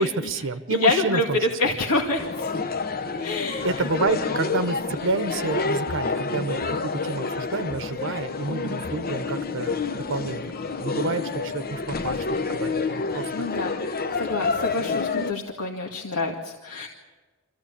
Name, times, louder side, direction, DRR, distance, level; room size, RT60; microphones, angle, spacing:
voice 1, 0.0-1.4 3.6-10.5 10.8-12.2 12.5-13.4, right 3 dB, 60° right, 10 dB, 0.9 m, -29 dB
voice 2, 0.7-2.5 3.2-3.8 8.5-8.8 13.3-13.8 14.1-16.9, left 3 dB, 90° left, 0 dB, 2.2 m, -27 dB
sound 1, 2.2-15.3, left 4 dB, 40° left, 0.9 m, -28 dB
26.0 x 15.5 x 8.5 m, 1.3 s
head